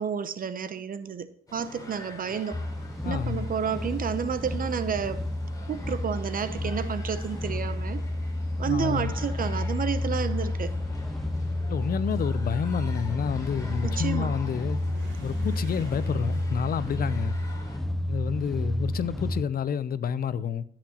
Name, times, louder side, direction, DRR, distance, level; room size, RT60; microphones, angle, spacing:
voice 1, 0.0-2.6 3.0-5.2 5.7-8.0 8.6-10.7 13.8-14.3, right 7 dB, 45° right, 0.8 m, -30 dB
sound 1, 1.5-17.8, left 2 dB, 20° left, 3.2 m, -47 dB
sound 2, 2.5-19.4, left 1 dB, ahead, 0.6 m, -31 dB
voice 2, 3.0-3.5 8.6-9.1 11.7-14.8 15.2-17.4 18.1-20.6, left 7 dB, 50° left, 0.6 m, -29 dB
Motorcycle / Accelerating revving vroom, 9.5-18.3, right 2 dB, 80° right, 1.9 m, -50 dB
15.0 x 5.9 x 3.0 m
cardioid pair, 90°, 20 cm